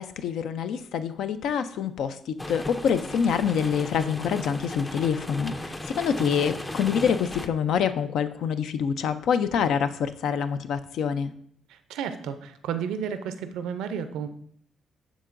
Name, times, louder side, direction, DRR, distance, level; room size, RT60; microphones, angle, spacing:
voice 1, 0.0-11.3, left 7 dB, 75° left, 11 dB, 0.3 m, -26 dB
sound 1, 2.4-7.5, left 1 dB, 15° left, 0.4 m, -36 dB
voice 2, 11.7-14.3, right 7 dB, 90° right, 10 dB, 0.5 m, -32 dB
11.0 x 3.7 x 2.5 m, 0.64 s
cardioid pair, 90°, 0 cm